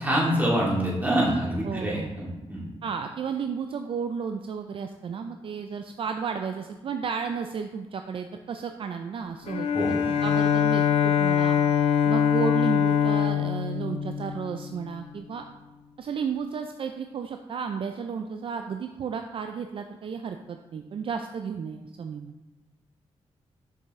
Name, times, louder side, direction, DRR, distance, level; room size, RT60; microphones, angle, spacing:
voice 1, 0.0-2.6 9.7-9.9, right 1 dB, 15° right, -5 dB, 2.4 m, -25 dB
voice 2, 1.6-2.1 2.8-11.6 12.0-15.4 16.0-22.4, right 6 dB, 55° right, 6 dB, 0.4 m, -33 dB
Bowed string instrument, 9.5-15.0, left 8 dB, 70° left, 0.5 m, -23 dB
6.6 x 5.9 x 3.2 m, 1.1 s
cardioid pair, 90°, 11 cm